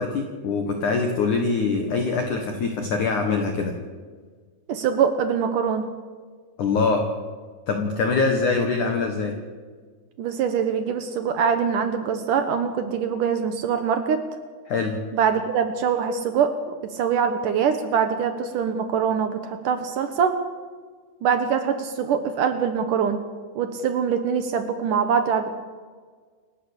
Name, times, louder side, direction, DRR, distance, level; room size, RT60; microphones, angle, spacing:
voice 1, 0.0-3.7 6.6-7.0 7.7-9.3 14.7-15.0, left 4 dB, 55° left, 3 dB, 2.5 m, -23 dB
voice 2, 4.7-5.8 10.2-14.2 15.1-20.4 21.2-23.2 23.6-25.5, right 7 dB, 70° right, 8 dB, 2.0 m, -23 dB
28.5 x 12.0 x 8.3 m, 1.6 s
omnidirectional pair, 5.3 m